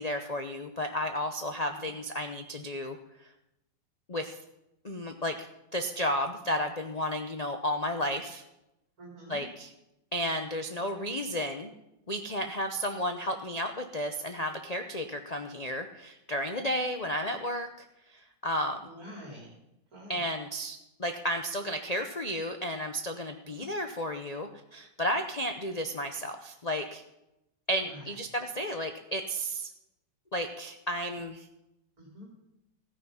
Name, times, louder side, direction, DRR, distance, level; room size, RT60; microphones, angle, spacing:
voice 1, 0.0-3.0 4.1-4.4 4.8-5.5 5.7-8.4 9.3-9.7 10.1-11.7 12.1-17.7 18.1-18.9 20.1-27.0 27.7-29.7 30.3-31.5, equal, 75° left, 6 dB, 0.3 m, -33 dB
voice 2, 9.0-9.5 18.9-19.5 19.9-20.2 23.5-23.7 27.8-28.0 32.0-32.3, equal, 50° right, -2 dB, 3.2 m, -47 dB
14.0 x 9.6 x 5.6 m, 0.90 s
omnidirectional pair, 2.0 m